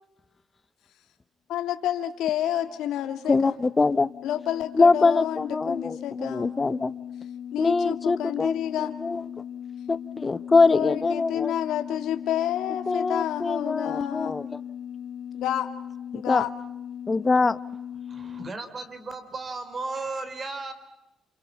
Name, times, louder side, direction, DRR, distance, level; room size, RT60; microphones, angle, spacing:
voice 1, 1.5-3.5 4.2-6.5 7.5-8.9 10.7-14.3 15.3-15.7 16.1-16.5, left 11 dB, 85° left, 1.8 m, -29 dB
sound 1, 2.3-18.5, left 9 dB, 65° left, 2.3 m, -39 dB
voice 2, 3.3-4.1 4.7-6.9 7.6-9.2 9.9-11.5 12.9-14.6 16.1-16.4 17.1-17.6, left 3 dB, 25° left, 1.0 m, -23 dB
voice 3, 18.1-20.7, right 3 dB, 35° right, 4.4 m, -35 dB
29.0 x 28.5 x 5.7 m
cardioid pair, 90°, 0 cm